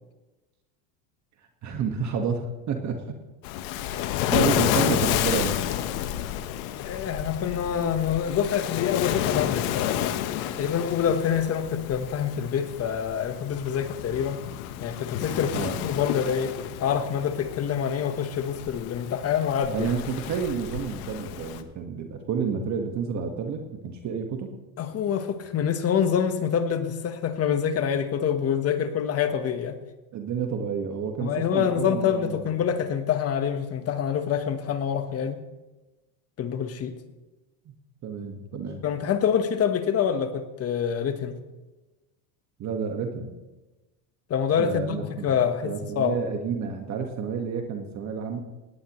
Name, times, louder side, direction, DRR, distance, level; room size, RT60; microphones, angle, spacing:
voice 1, 1.6-3.0 3.8-5.6 15.5-15.9 19.7-24.5 30.1-32.4 37.6-37.7 38.0-38.8 42.6-43.3 44.6-48.4, right 6 dB, 40° right, 4 dB, 1.7 m, -30 dB
Waves surf, 3.4-21.6, left 12 dB, 70° left, 1.2 m, -30 dB
voice 2, 6.8-10.2 10.5-14.4 14.8-16.5 16.8-19.9 24.8-29.8 31.2-35.4 36.4-36.9 38.8-41.4 44.3-46.2, left 8 dB, 35° left, 9 dB, 1.3 m, -26 dB
18.5 x 18.0 x 3.2 m, 1.1 s
supercardioid pair, 125°, 43 cm